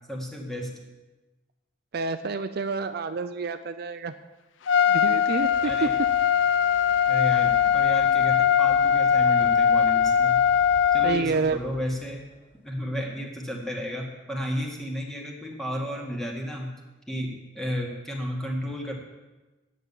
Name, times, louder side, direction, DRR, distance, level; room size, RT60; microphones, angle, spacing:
voice 1, 0.1-0.7 5.6-5.9 7.1-10.4 10.9-12.2 12.6-16.7 17.1-18.9, equal, ahead, -1 dB, 2.0 m, -33 dB
voice 2, 1.9-4.1 4.9-5.9 11.0-11.6, right 4 dB, 55° right, 9 dB, 0.5 m, -28 dB
Trumpet, 4.7-11.2, left 8 dB, 75° left, 0.4 m, -21 dB
sound 1, 4.8-12.7, equal, 45° left, 3.3 m, -49 dB
9.2 x 7.3 x 8.4 m, 1.1 s
head